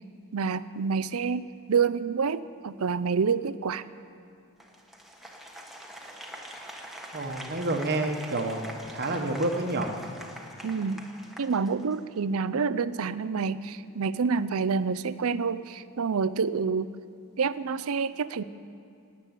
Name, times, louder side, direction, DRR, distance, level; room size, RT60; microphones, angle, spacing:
voice 1, 0.3-3.8 10.6-11.0 11.4-16.9 17.4-18.4, right 5 dB, 70° right, 15 dB, 0.5 m, -28 dB
Applause, 4.6-12.2, right 1 dB, ahead, 1.4 m, -44 dB
voice 2, 7.1-9.9, right 2 dB, 45° right, 3 dB, 1.2 m, -29 dB
17.5 x 8.4 x 9.4 m, 2.5 s
head